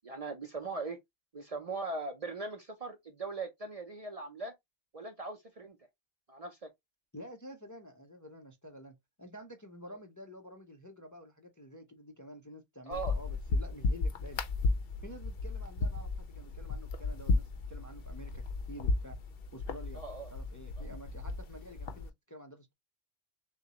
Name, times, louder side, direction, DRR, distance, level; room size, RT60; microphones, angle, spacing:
voice 1, 0.0-1.0 1.3-4.5 4.9-5.8 6.3-6.7 12.9-13.1 20.0-20.3, right 3 dB, 40° right, 0.6 m, -40 dB
voice 2, 7.1-14.4 15.0-19.2 19.5-20.0 20.3-22.7, equal, 20° left, 0.5 m, -49 dB
sound 1, 12.9-22.1, left 3 dB, 65° left, 0.8 m, -34 dB
6.6 x 2.2 x 2.8 m
omnidirectional pair, 1.1 m